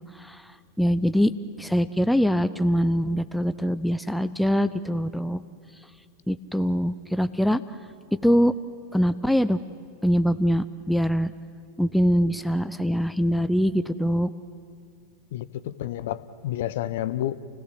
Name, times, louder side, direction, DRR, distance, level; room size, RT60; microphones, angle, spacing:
voice 1, 0.8-1.3 1.6-5.4 6.3-7.6 8.1-8.5 8.9-9.6 10.0-11.3 11.8-14.3, equal, ahead, 11 dB, 0.6 m, -23 dB
voice 2, 15.3-17.4, left 13 dB, 55° left, 15 dB, 0.8 m, -30 dB
29.0 x 17.0 x 8.0 m, 2.2 s
figure-of-eight pair, 90°, 0 cm